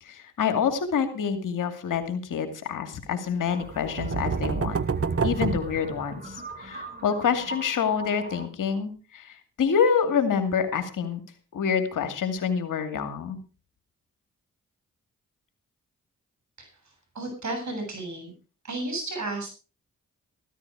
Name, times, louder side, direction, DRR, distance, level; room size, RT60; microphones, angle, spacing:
voice 1, 0.0-4.8 5.2-11.2 11.5-13.4, left 7 dB, 85° left, 8 dB, 2.5 m, -27 dB
sound 1, 3.4-8.5, right 2 dB, 30° right, 3.7 m, -42 dB
sound 2, 3.6-6.5, right 5 dB, 45° right, 1.2 m, -28 dB
voice 2, 17.1-18.3 18.6-19.5, right 2 dB, 65° right, 4 dB, 7.7 m, -32 dB
14.0 x 14.0 x 4.8 m, 0.35 s
supercardioid pair, 40°, 31 cm